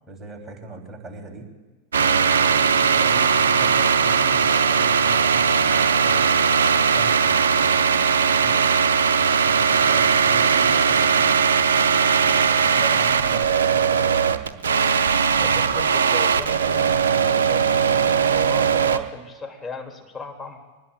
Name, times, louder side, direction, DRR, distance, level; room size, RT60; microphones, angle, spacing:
voice 1, 0.1-1.5 1.9-8.6 9.2-11.3 12.2-14.7, right 3 dB, 15° right, 0 dB, 3.5 m, -38 dB
sound 1, 1.9-19.0, right 6 dB, 65° right, 0.7 m, -19 dB
voice 2, 15.4-16.9 17.2-20.6, left 3 dB, 10° left, 2 dB, 2.6 m, -36 dB
24.0 x 20.0 x 2.5 m, 1.2 s
figure-of-eight pair, 90°, 0 cm